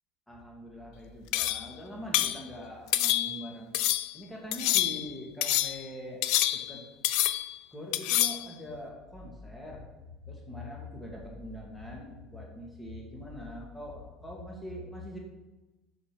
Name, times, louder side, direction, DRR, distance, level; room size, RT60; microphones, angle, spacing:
voice 1, 0.3-3.8 4.1-6.2 6.5-6.8 7.7-9.8 10.3-15.2, equal, 10° left, -2 dB, 2.0 m, -42 dB
sound 1, 1.3-1.7 2.1-2.4 2.9-3.4 3.7-4.1 4.5-5.1 5.4-5.8 6.2-6.8 7.0-7.6 7.9-8.5, left 15 dB, 70° left, 0.3 m, -27 dB
5.2 x 5.1 x 5.2 m, 1.1 s
supercardioid pair, 105°, 0 cm